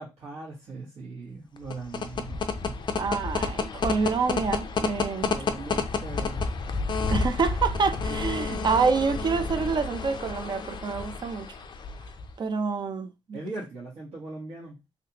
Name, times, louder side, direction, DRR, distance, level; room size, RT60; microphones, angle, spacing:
voice 1, 0.0-2.7 5.3-6.4 8.1-8.7 13.3-14.8, right 3 dB, 75° right, 1.5 m, -40 dB
sound 1, 1.6-12.3, left 4 dB, 45° left, 0.4 m, -30 dB
voice 2, 2.9-5.3 7.1-11.5 12.4-13.4, right 5 dB, 40° right, 0.5 m, -27 dB
3.4 x 2.8 x 2.8 m
cardioid pair, 130°, 11 cm